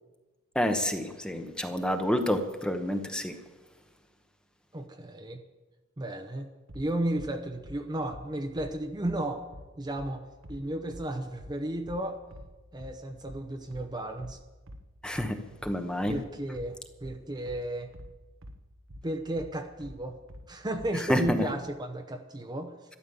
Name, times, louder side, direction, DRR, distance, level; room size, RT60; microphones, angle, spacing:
voice 1, 0.5-3.4 15.0-16.2 20.9-21.4, equal, 5° left, 6 dB, 1.0 m, -29 dB
voice 2, 4.7-5.4 6.0-6.5 6.7-9.5 9.8-12.2 12.7-14.4 16.1-17.9 19.0-20.2 20.5-22.7, right 1 dB, 20° right, 4 dB, 0.8 m, -34 dB
sound 1, 6.7-21.5, equal, 70° right, 1.1 m, -47 dB
13.0 x 12.0 x 7.1 m, 1.2 s
head